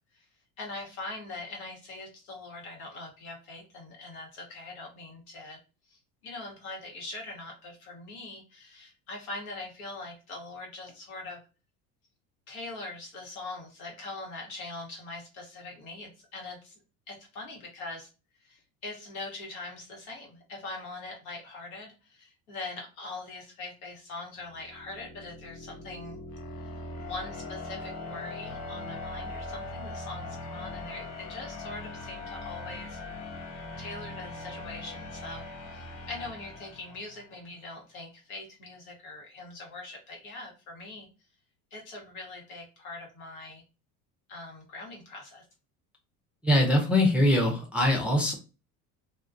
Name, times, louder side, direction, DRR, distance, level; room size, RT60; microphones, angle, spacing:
voice 1, 0.6-5.6 5.9-11.4 12.5-16.8 17.1-18.1 18.4-26.2 26.6-26.7 27.0-33.0 33.8-41.1 41.7-43.6 44.3-45.4, left 2 dB, 80° left, 0 dB, 1.1 m, -42 dB
sound 1, 24.5-37.4, left 2 dB, 40° left, 0.6 m, -41 dB
voice 2, 46.4-48.3, left 1 dB, 5° right, -1 dB, 0.4 m, -23 dB
2.2 x 2.2 x 2.5 m, 0.33 s
supercardioid pair, 95°, 43 cm